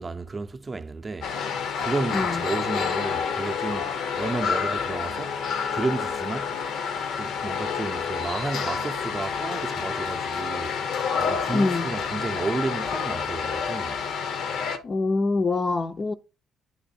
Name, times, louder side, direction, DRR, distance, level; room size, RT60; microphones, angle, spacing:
voice 1, 0.0-1.3 1.8-5.4 5.7-6.6 7.1-10.9 11.2-14.0, right 3 dB, 30° right, 0.6 m, -32 dB
sound 1, 1.2-14.8, left 6 dB, 75° left, 0.8 m, -29 dB
voice 2, 2.1-2.4 11.5-11.9 14.8-16.1, left 3 dB, 40° left, 0.5 m, -24 dB
9.3 x 3.1 x 4.2 m
cardioid pair, 90°, 0 cm